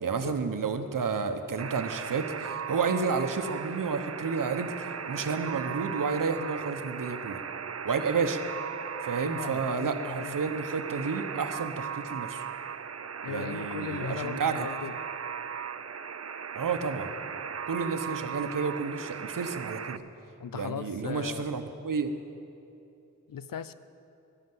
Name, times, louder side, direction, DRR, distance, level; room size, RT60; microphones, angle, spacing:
voice 1, 0.0-7.4 7.8-8.4 9.0-12.4 13.3-14.8 16.5-17.1 17.7-20.0 20.5-22.1, right 5 dB, 75° right, 8 dB, 1.1 m, -31 dB
Alarm, 1.6-20.0, right 7 dB, 50° right, 0.6 m, -37 dB
voice 2, 9.2-10.3 13.2-14.9 20.4-21.5 23.3-23.7, left 8 dB, 85° left, 14 dB, 0.6 m, -38 dB
16.0 x 11.5 x 7.9 m, 2.8 s
wide cardioid pair, 70°, 33 cm